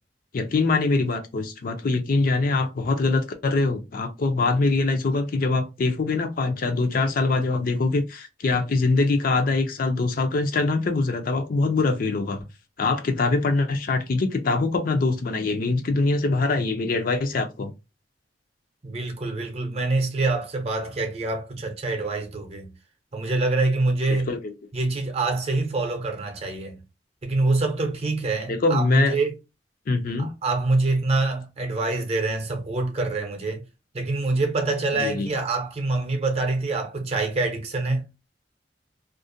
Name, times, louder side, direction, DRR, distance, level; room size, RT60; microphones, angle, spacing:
voice 1, 0.3-12.4 12.8-17.7 24.3-24.5 28.5-29.2 29.9-30.3 34.9-35.3, left 3 dB, 55° left, 0.4 m, -23 dB
voice 2, 18.8-22.7 23.1-24.3 24.7-26.8 27.2-29.3 30.2-33.6 33.9-38.1, right 3 dB, 35° right, 0.6 m, -25 dB
2.4 x 2.1 x 2.5 m
head